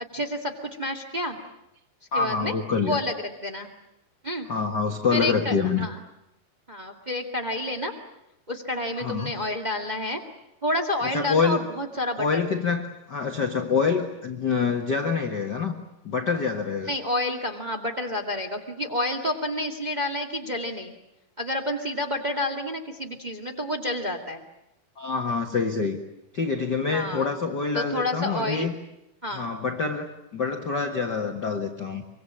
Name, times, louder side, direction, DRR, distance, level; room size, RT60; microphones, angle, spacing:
voice 1, 0.1-1.4 2.1-2.5 2.8-3.7 4.2-4.5 5.1-6.0 6.7-7.9 8.5-10.2 10.6-12.4 16.8-20.9 21.4-24.4 26.9-27.3 27.7-28.7 29.2-29.5, left 1 dB, 25° right, 2 dB, 1.0 m, -29 dB
voice 2, 2.1-3.0 4.5-5.9 9.0-9.3 11.0-11.6 12.2-15.7 16.0-16.9 25.0-26.0 26.3-28.7 29.3-32.0, left 5 dB, 80° left, 4 dB, 0.9 m, -26 dB
25.0 x 24.5 x 8.8 m, 0.85 s
omnidirectional pair, 4.6 m